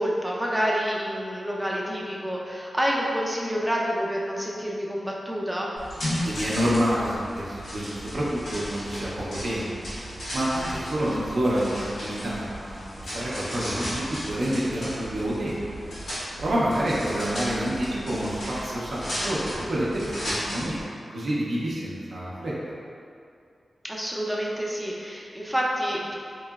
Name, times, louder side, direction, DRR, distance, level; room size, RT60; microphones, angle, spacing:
voice 1, 0.0-5.7 11.0-11.2 23.8-26.1, equal, 5° right, -4 dB, 0.4 m, -28 dB
sound 1, 5.8-20.8, equal, 90° left, 1.1 m, -35 dB
voice 2, 6.2-9.9 10.3-15.6 16.4-20.8 21.1-22.5, equal, 70° right, -6 dB, 0.6 m, -28 dB
3.0 x 2.8 x 2.3 m, 2.4 s
cardioid pair, 65°, 0 cm